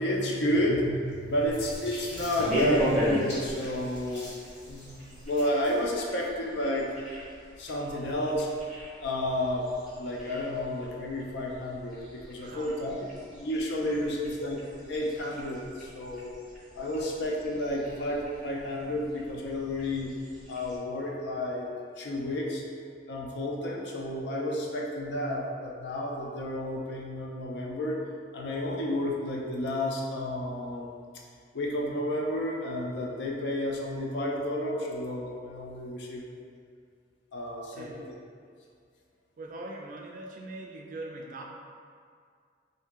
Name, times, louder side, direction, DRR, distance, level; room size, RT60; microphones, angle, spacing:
voice 1, 0.0-4.3 4.7-6.9 7.6-8.5 9.0-16.3 16.7-20.1 20.5-21.7 22.0-22.6 23.1-28.0 28.3-30.9 31.5-36.4 37.3-38.0, left 1 dB, 70° left, -1 dB, 0.5 m, -31 dB
sound 1, 1.1-5.8, left 1 dB, 85° left, 1.4 m, -46 dB
sound 2, 1.4-20.8, equal, 5° right, 0.7 m, -38 dB
voice 2, 12.4-13.3 14.0-14.2 16.9-17.2 37.7-38.1 39.4-41.4, right 2 dB, 45° right, 0 dB, 0.3 m, -43 dB
2.8 x 2.6 x 3.5 m, 2.1 s
head